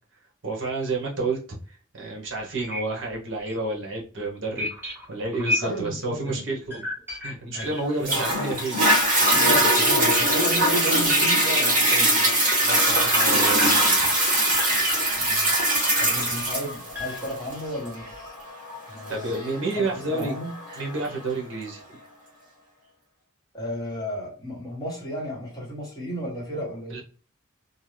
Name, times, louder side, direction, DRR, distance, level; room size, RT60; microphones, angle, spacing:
voice 1, 0.4-1.4 1.7-6.8 7.2-8.8 12.6-14.1 19.1-20.3 20.8-22.0 26.9-27.0, right 2 dB, 55° right, 0.9 m, -30 dB
sound 1, 2.0-2.1 2.6-2.8 3.1-3.2 3.5-3.6 4.6-5.9 6.7-8.7 9.1-9.3 9.5-9.7 10.0-10.2 10.6-10.7 11.6-11.7 12.9-16.1 16.9-17.5 17.8-18.2, left 1 dB, 10° right, 0.7 m, -33 dB
voice 2, 5.6-6.4 7.5-7.7 8.1-8.3 9.3-12.3 15.2-15.6 16.0-18.4 18.9-19.4 19.8-20.6 23.5-27.0, equal, 20° left, 1.0 m, -34 dB
Toilet flush, 8.0-21.1 21.7-21.8, right 1 dB, 35° right, 1.4 m, -21 dB
2.6 x 2.2 x 3.1 m
head